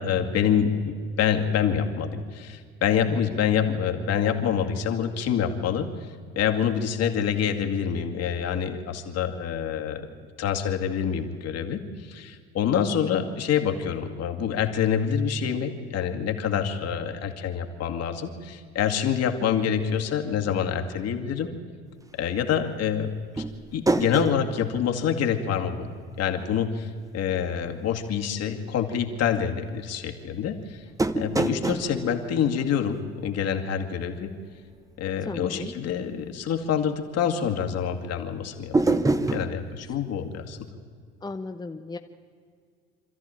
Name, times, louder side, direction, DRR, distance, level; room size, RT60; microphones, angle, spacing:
voice 1, 0.0-5.9 6.4-10.1 10.4-21.5 22.2-23.5 23.7-30.8 31.1-34.3 35.0-38.9 39.3-40.7, left 8 dB, 50° left, 4 dB, 2.4 m, -26 dB
sound 1, 23.4-26.0 26.3-26.4 31.0-33.5 38.7-39.6, right 2 dB, 10° right, 1.1 m, -27 dB
voice 2, 35.3-35.7 39.9-40.0 41.2-42.0, left 3 dB, 10° left, 6 dB, 0.9 m, -36 dB
26.0 x 13.5 x 9.0 m, 2.1 s
hypercardioid pair, 65°, 33 cm